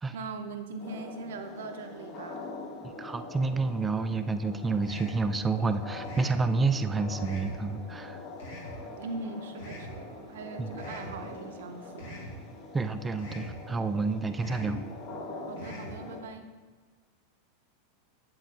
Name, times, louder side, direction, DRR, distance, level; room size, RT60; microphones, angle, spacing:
voice 1, 0.1-2.5 9.0-12.3 15.4-16.5, right 3 dB, 80° right, 6 dB, 0.5 m, -40 dB
sound 1, 0.8-16.2, left 2 dB, 50° left, 1.4 m, -44 dB
voice 2, 3.0-8.2 10.6-10.7 12.7-14.9, right 3 dB, 15° right, 9 dB, 0.4 m, -29 dB
sound 2, 4.8-5.2 6.0-6.4 7.2-7.6 8.4-8.8 9.6-9.9 10.8-11.1 12.0-12.3 13.2-13.5 14.4-14.7 15.6-15.9, equal, 85° left, 1.7 m, -43 dB
8.0 x 7.5 x 2.4 m, 1.4 s
hypercardioid pair, 115°, 0 cm